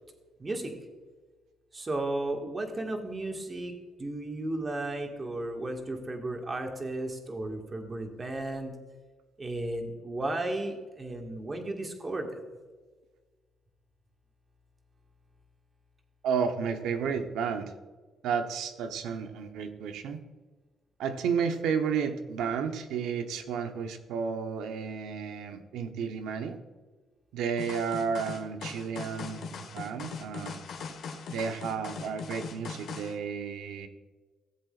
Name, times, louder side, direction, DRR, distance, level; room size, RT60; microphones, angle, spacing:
voice 1, 0.4-0.7 1.7-3.7 4.0-8.7 9.4-12.3, right 2 dB, 30° right, 2 dB, 1.9 m, -34 dB
voice 2, 16.2-17.7 18.2-20.2 21.0-26.6 27.3-30.6 31.3-33.9, right 6 dB, 85° right, 6 dB, 1.0 m, -32 dB
sound 1, 27.6-33.1, left 5 dB, 75° left, 1.6 m, -40 dB
15.5 x 7.7 x 2.5 m, 1.3 s
cardioid pair, 90°, 0 cm